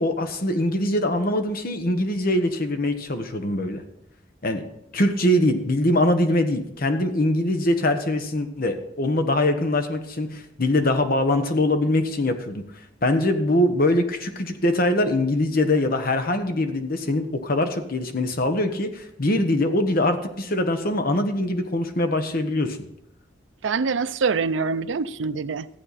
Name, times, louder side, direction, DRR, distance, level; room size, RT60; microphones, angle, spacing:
voice 1, 0.0-3.8 4.4-4.6 4.9-12.6 13.0-22.8, left 1 dB, 50° left, 1.2 m, -23 dB
voice 2, 23.6-25.7, right 5 dB, 85° right, 0.5 m, -25 dB
14.5 x 8.8 x 4.2 m
head